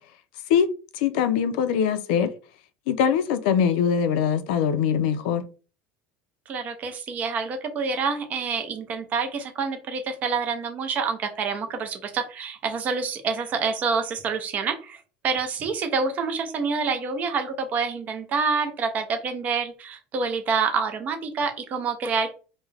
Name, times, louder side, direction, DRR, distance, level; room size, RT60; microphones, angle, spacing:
voice 1, 0.9-2.3 2.9-5.4, left 8 dB, 75° left, 0.4 m, -22 dB
voice 2, 6.5-22.3, right 5 dB, 35° right, 0.5 m, -27 dB
2.3 x 2.1 x 3.2 m
cardioid pair, 145°, 5 cm